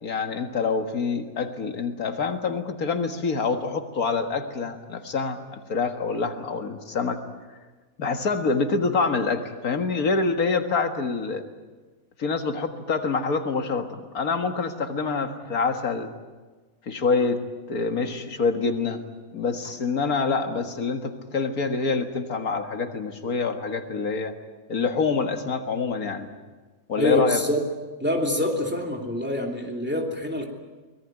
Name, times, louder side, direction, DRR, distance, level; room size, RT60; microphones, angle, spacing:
voice 1, 0.0-7.2 8.0-11.4 12.2-16.1 16.9-17.4 17.7-19.0 19.3-24.4 24.7-26.3 26.9-27.4, left 4 dB, 80° left, 6 dB, 2.2 m, -26 dB
voice 2, 26.9-27.6 28.0-30.5, left 1 dB, 5° right, 1 dB, 2.9 m, -25 dB
24.0 x 20.0 x 9.1 m, 1.3 s
omnidirectional pair, 1.5 m